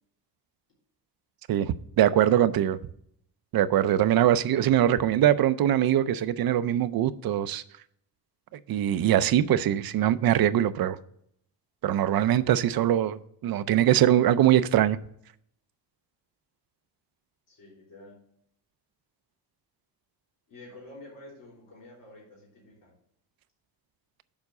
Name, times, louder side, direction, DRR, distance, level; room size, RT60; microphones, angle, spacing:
voice 1, 1.5-2.8 3.5-7.6 8.7-11.0 11.8-15.0, right 11 dB, 55° right, 0.5 m, -22 dB
voice 2, 17.5-18.2 20.5-22.9, left 2 dB, 50° left, 3.5 m, -49 dB
7.2 x 4.7 x 6.5 m
wide cardioid pair, 170°, 43 cm